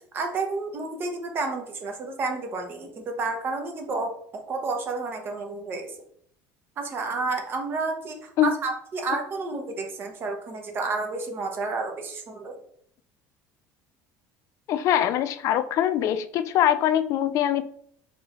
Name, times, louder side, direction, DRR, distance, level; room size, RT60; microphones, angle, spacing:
voice 1, 0.1-6.0 6.8-12.6, right 3 dB, 30° right, 3 dB, 0.9 m, -30 dB
voice 2, 14.7-17.6, left 11 dB, 50° left, 13 dB, 0.4 m, -23 dB
4.7 x 3.7 x 3.0 m, 0.64 s
cardioid pair, 150°, 7 cm